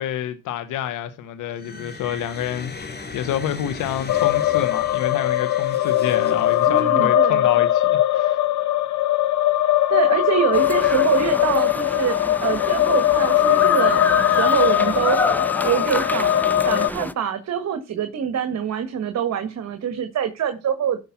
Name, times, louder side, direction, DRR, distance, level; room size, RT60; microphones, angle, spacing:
voice 1, 0.0-8.4, left 10 dB, 90° left, 1.2 m, -28 dB
sound 1, 1.5-7.2, left 4 dB, 35° left, 3.1 m, -37 dB
sound 2, 4.1-16.9, left 13 dB, 70° left, 1.3 m, -20 dB
voice 2, 6.7-7.5 9.9-15.2 15.6-16.3 16.6-21.0, right 8 dB, 60° right, 1.7 m, -25 dB
sound 3, 10.5-17.1, left 1 dB, 5° left, 0.9 m, -29 dB
13.5 x 5.4 x 5.9 m
cardioid pair, 90°, 30 cm